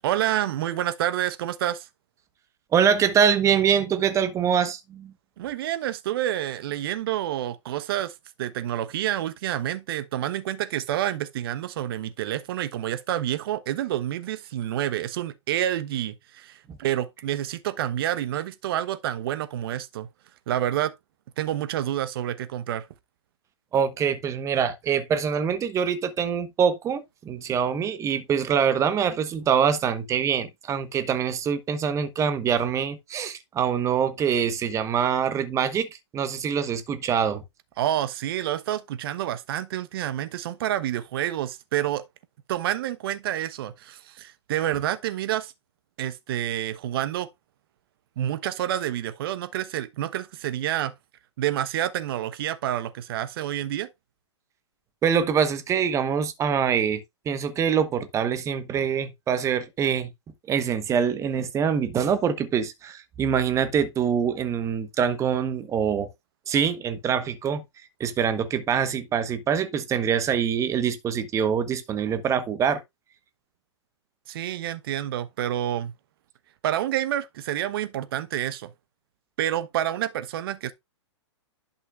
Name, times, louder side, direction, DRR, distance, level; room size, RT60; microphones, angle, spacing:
voice 1, 0.0-1.9 5.4-20.1 20.5-20.9 21.4-22.9 37.8-42.1 42.5-45.5 46.0-47.3 48.2-50.9 51.4-53.9 74.3-75.9 76.6-78.7 79.4-80.7, right 12 dB, 50° right, 1.0 m, -28 dB
voice 2, 2.7-5.1 16.7-16.8 23.7-35.9 36.1-37.4 55.0-60.1 60.5-66.1 66.5-67.6 68.0-72.8, right 7 dB, 20° right, 1.1 m, -24 dB
11.0 x 5.7 x 2.5 m
hypercardioid pair, 120°, 15 cm